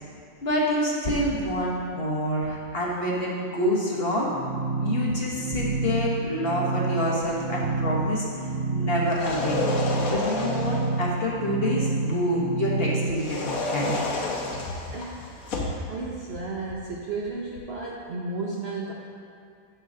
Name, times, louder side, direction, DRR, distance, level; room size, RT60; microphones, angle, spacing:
voice 1, 0.4-4.3 4.8-8.3 8.7-9.6 10.1-14.0 14.9-15.1, left 1 dB, 40° left, -4 dB, 1.2 m, -27 dB
sound 1, 4.3-13.1, right 3 dB, 40° right, 2.1 m, -29 dB
sound 2, 9.1-10.9 13.1-15.8, left 2 dB, 60° left, 1.4 m, -30 dB
voice 2, 14.6-18.9, right 3 dB, 55° right, -3 dB, 0.7 m, -34 dB
9.7 x 3.9 x 6.2 m, 2.4 s
omnidirectional pair, 1.8 m